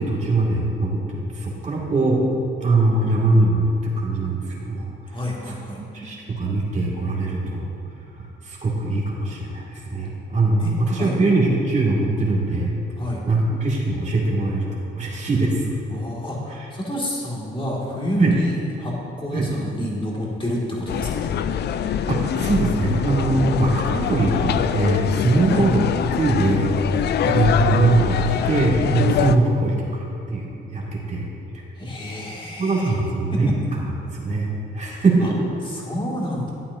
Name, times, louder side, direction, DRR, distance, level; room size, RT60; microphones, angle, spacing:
voice 1, 0.0-2.2 2.6-4.9 5.8-7.7 8.4-12.8 13.3-14.7 15.0-15.7 18.2-18.3 19.3-19.5 21.8-25.8 26.2-26.7 27.2-29.8 30.3-31.2 32.6-33.8 34.1-35.5, right 2 dB, 35° right, -3 dB, 2.1 m, -21 dB
voice 2, 5.1-5.8 10.6-11.2 13.0-13.2 15.9-18.9 19.2-21.3 25.5-25.7 31.8-32.9 33.3-33.5 35.2-35.3 35.6-36.5, left 1 dB, 25° left, -4 dB, 2.2 m, -29 dB
sound 1, 20.9-29.4, left 8 dB, 55° left, 0.4 m, -24 dB
11.5 x 8.7 x 2.7 m, 2.6 s
cardioid pair, 90°, 20 cm